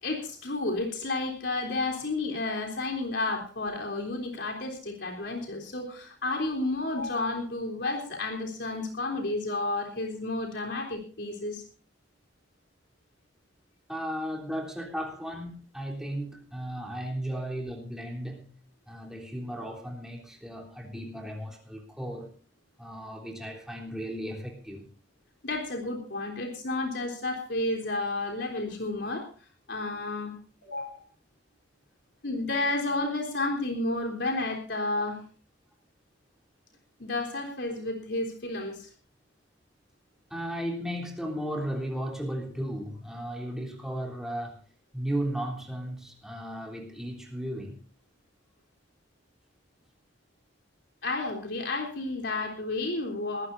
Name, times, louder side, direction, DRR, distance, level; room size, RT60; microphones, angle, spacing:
voice 1, 0.0-11.6 17.2-17.4 25.4-29.3 29.7-30.3 30.6-31.0 32.2-35.2 37.0-38.9 51.0-53.5, left 2 dB, 75° left, 1 dB, 3.7 m, -31 dB
voice 2, 13.9-18.6 18.9-22.3 22.8-24.9 40.3-44.6 44.9-47.8, equal, 5° right, 1 dB, 3.3 m, -35 dB
22.0 x 14.5 x 2.7 m, 0.37 s
head